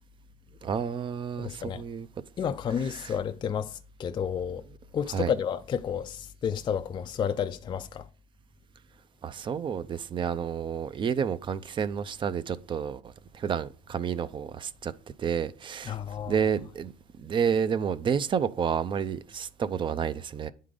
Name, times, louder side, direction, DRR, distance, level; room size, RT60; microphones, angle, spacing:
voice 1, 0.6-2.1 2.9-3.1 5.1-5.3 9.2-14.9 15.2-16.0 16.3-16.9 17.2-20.5, right 7 dB, 30° right, 0.5 m, -30 dB
voice 2, 1.4-1.8 2.4-4.6 4.9-8.1 15.9-16.4, left 8 dB, 30° left, 0.4 m, -31 dB
9.4 x 3.7 x 4.9 m
cardioid pair, 135°, 17 cm